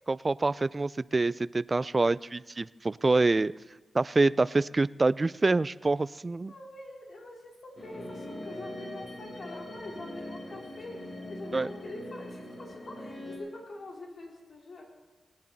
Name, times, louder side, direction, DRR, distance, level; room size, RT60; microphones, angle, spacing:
voice 1, 0.1-3.5 3.9-6.5 11.5-11.7, right 3 dB, 35° right, 19 dB, 0.3 m, -26 dB
voice 2, 6.5-14.9, left 2 dB, 65° left, 0 dB, 2.8 m, -44 dB
sound 1, 7.8-13.4, left 1 dB, 45° left, 4.7 m, -42 dB
19.0 x 10.5 x 4.1 m, 1.2 s
cardioid pair, 55°, 0 cm